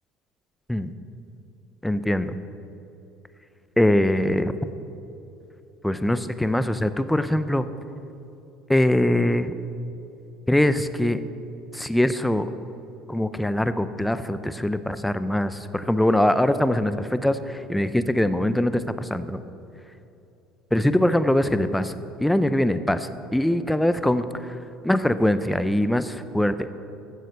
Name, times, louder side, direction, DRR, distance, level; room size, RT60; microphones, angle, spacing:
voice 1, 1.8-2.3 3.8-4.5 5.8-7.7 8.7-9.5 10.5-11.2 11.7-12.5 13.1-19.4 20.7-22.0 22.2-24.2 24.8-26.7, left 1 dB, 5° left, 12 dB, 0.7 m, -22 dB
14.0 x 7.5 x 6.8 m, 2.8 s
supercardioid pair, 85°, 0 cm